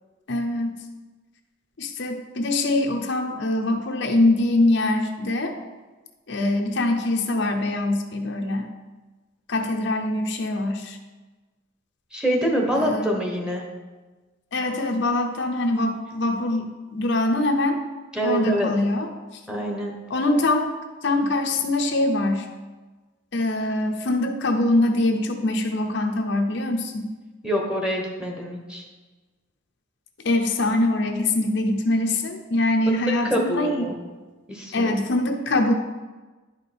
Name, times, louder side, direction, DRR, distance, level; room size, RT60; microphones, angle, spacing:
voice 1, 0.3-0.8 1.8-5.5 6.3-8.7 9.5-11.0 12.8-13.2 14.5-17.8 18.2-19.4 20.1-20.7 21.0-22.5 23.3-27.1 30.2-33.9 34.7-35.7, left 2 dB, 60° left, 3 dB, 0.8 m, -23 dB
voice 2, 12.1-13.6 18.1-18.7 19.5-19.9 27.4-28.8 32.9-33.0 33.3-34.0 34.5-34.9, equal, 5° right, -1 dB, 1.2 m, -25 dB
10.5 x 5.3 x 4.3 m, 1.3 s
head